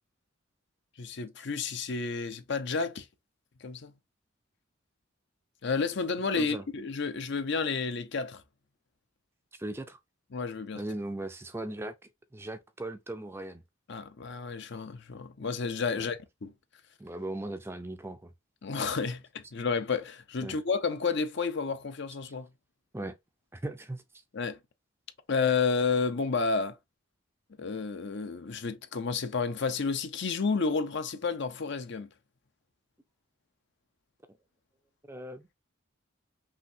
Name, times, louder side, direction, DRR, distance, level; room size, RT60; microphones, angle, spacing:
voice 1, 1.0-3.1 3.6-3.9 5.6-8.4 10.3-10.8 13.9-16.5 18.6-22.5 24.3-24.6 25.3-26.8 27.6-32.1, left 4 dB, 55° left, 0.6 m, -31 dB
voice 2, 6.3-6.6 9.5-10.0 10.8-11.9 12.3-13.6 15.9-16.1 17.0-18.3 20.4-20.6 22.9-23.1 23.5-24.0 35.1-35.5, right 1 dB, 10° right, 0.4 m, -38 dB
5.7 x 2.7 x 2.7 m
head